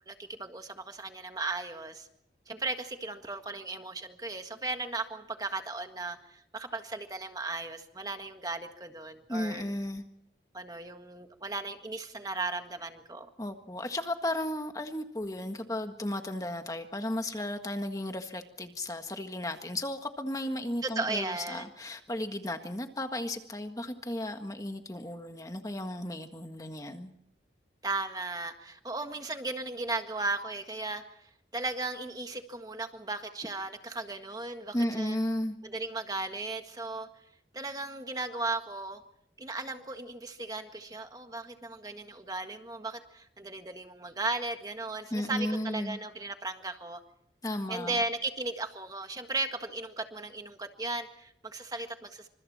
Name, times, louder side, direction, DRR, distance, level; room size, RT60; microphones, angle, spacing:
voice 1, 0.1-2.1 2.5-9.6 10.5-13.3 20.8-21.7 27.8-35.2 35.6-37.1 37.5-39.0 39.4-47.0 47.7-52.3, right 3 dB, 20° right, 6 dB, 1.7 m, -36 dB
voice 2, 9.3-10.0 13.4-27.1 34.7-35.6 45.1-46.0 47.4-48.0, left 1 dB, 20° left, 6 dB, 1.6 m, -34 dB
28.5 x 26.0 x 4.3 m, 0.71 s
head